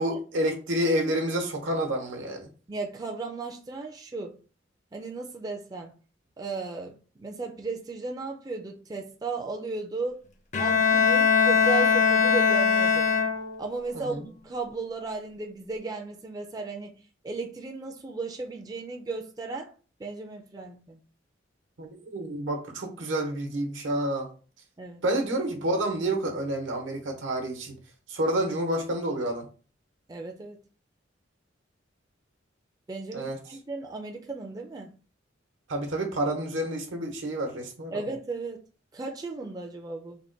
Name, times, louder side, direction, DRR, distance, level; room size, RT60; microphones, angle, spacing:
voice 1, 0.0-2.5 13.9-14.2 21.8-24.3 25.0-27.7 28.1-29.5 33.1-33.4 35.7-38.1, right 1 dB, 85° right, 0.9 m, -29 dB
voice 2, 2.7-4.3 4.9-5.9 6.4-10.2 10.6-13.1 13.6-17.0 17.2-19.7 20.0-21.0 24.8-25.0 30.1-30.6 32.9-34.9 37.9-38.6 38.9-40.2, right 3 dB, 20° right, 0.4 m, -35 dB
Bowed string instrument, 10.5-13.7, left 5 dB, 40° left, 0.5 m, -21 dB
3.5 x 2.2 x 3.8 m
head